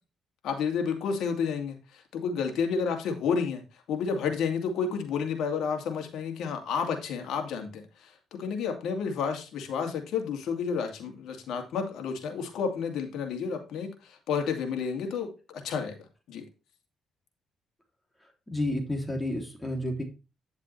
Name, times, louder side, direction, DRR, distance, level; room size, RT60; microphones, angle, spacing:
voice 1, 0.4-3.6 3.9-16.0 16.3-16.4, left 6 dB, 80° left, 4 dB, 2.7 m, -31 dB
voice 2, 18.5-20.0, left 1 dB, 15° left, 3 dB, 3.0 m, -30 dB
10.0 x 7.3 x 3.3 m, 0.30 s
cardioid pair, 90°, 0 cm